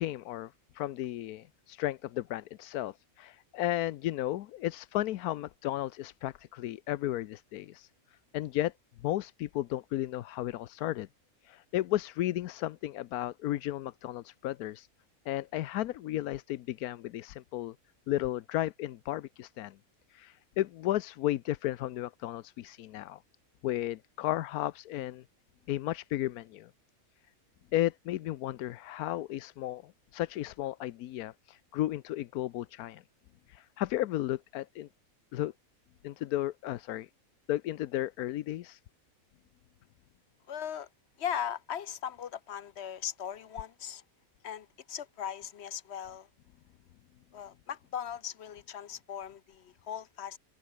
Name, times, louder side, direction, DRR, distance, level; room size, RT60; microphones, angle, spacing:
voice 1, 0.0-7.9 8.3-8.7 9.0-11.1 11.4-14.9 15.3-17.7 18.1-19.8 20.1-23.2 23.6-25.2 25.7-26.7 27.7-33.0 33.5-34.9 35.3-35.5 36.0-37.1 37.5-38.8, left 14 dB, 90° left, 1.1 m, -34 dB
voice 2, 40.5-40.9 41.2-44.0 44.4-46.3 47.3-50.4, left 9 dB, 55° left, 0.9 m, -38 dB
open air
omnidirectional pair, 1.5 m